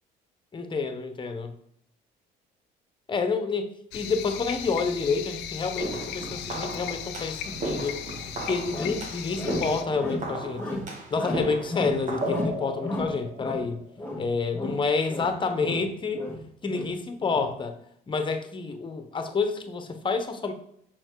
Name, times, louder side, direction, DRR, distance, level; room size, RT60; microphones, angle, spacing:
voice 1, 0.5-1.5 3.1-3.7 3.9-8.0 8.5-10.8 11.1-13.8 14.2-16.3 16.6-17.8 18.1-20.5, left 4 dB, 30° left, 8 dB, 1.0 m, -28 dB
sound 1, 3.9-9.8, left 10 dB, 90° left, 0.6 m, -37 dB
sound 2, 5.8-13.9, right 2 dB, 45° right, 1.4 m, -35 dB
sound 3, 8.2-8.3 8.7-9.0 9.4-10.3 10.6-10.9 11.1-12.0 12.3-13.7 14.0-14.3 14.5-15.9 16.1-17.5, left 2 dB, 10° left, 1.6 m, -33 dB
6.1 x 4.4 x 4.6 m, 0.70 s
cardioid pair, 110°, 17 cm